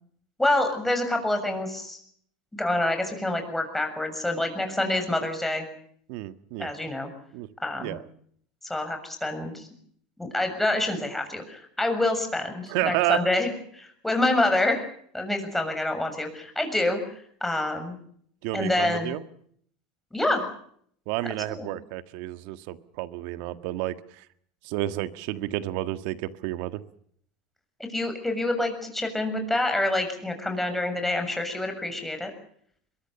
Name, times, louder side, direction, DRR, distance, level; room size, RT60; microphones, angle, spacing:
voice 1, 0.4-2.0 2.5-5.7 6.6-7.1 7.6-8.0 8.6-9.7 10.2-14.8 15.1-17.1 17.4-18.0 18.5-19.2 20.1-20.5 21.5-21.7 27.8-32.3, left 2 dB, 5° left, 5 dB, 7.0 m, -27 dB
voice 2, 6.1-6.7 7.3-7.5 7.8-8.0 12.7-13.3 18.4-19.2 21.1-24.2 24.6-26.8, right 16 dB, 65° right, 11 dB, 1.6 m, -30 dB
23.0 x 22.5 x 7.0 m, 0.64 s
supercardioid pair, 105°, 4 cm